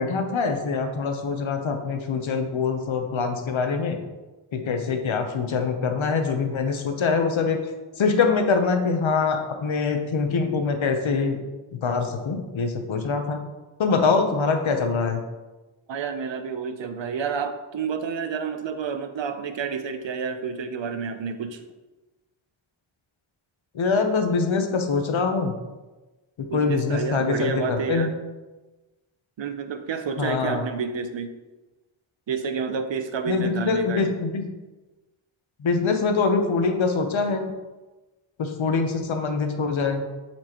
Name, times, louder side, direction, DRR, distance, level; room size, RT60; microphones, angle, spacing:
voice 1, 0.0-4.0 4.5-7.6 8.0-11.4 11.8-13.4 13.8-15.2 23.7-25.5 26.5-28.1 30.2-30.6 33.3-34.4 35.6-37.4 38.4-40.0, left 4 dB, 70° left, 5 dB, 0.8 m, -24 dB
voice 2, 15.9-21.6 26.5-28.1 29.4-31.3 32.3-34.2, right 6 dB, 65° right, 8 dB, 0.6 m, -29 dB
7.6 x 4.4 x 2.9 m, 1.1 s
wide cardioid pair, 115°, 49 cm